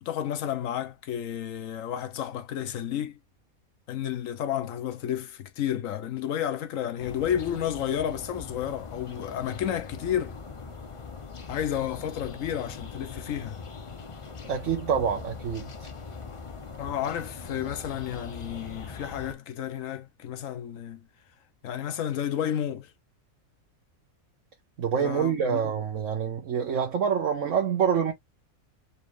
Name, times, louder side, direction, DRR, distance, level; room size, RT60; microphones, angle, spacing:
voice 1, 0.0-3.2 3.9-10.4 11.5-13.6 16.8-21.1 21.6-22.9 25.0-25.7, left 10 dB, 70° left, 1.1 m, -31 dB
sound 1, 7.0-19.3, left 5 dB, 35° left, 0.5 m, -41 dB
voice 2, 14.4-15.7 24.8-28.1, right 7 dB, 65° right, 1.3 m, -26 dB
4.3 x 2.9 x 3.1 m
omnidirectional pair, 1.5 m